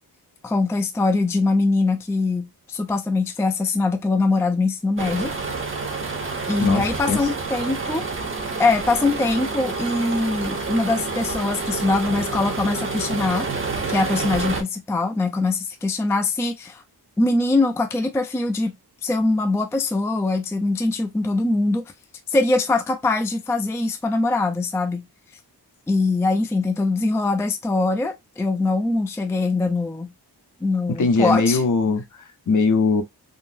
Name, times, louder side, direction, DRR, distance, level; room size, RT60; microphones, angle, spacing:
voice 1, 0.4-5.3 6.5-8.1 8.6-13.5 13.9-16.8 17.2-18.7 19.0-21.9 22.3-25.1 25.9-30.1 30.6-31.6, left 3 dB, 5° left, 0.4 m, -22 dB
sound 1, 5.0-14.6, right 3 dB, 30° right, 0.7 m, -28 dB
voice 2, 6.6-7.2 30.9-33.0, left 4 dB, 45° left, 0.7 m, -21 dB
3.7 x 2.0 x 2.5 m
wide cardioid pair, 105°, 41 cm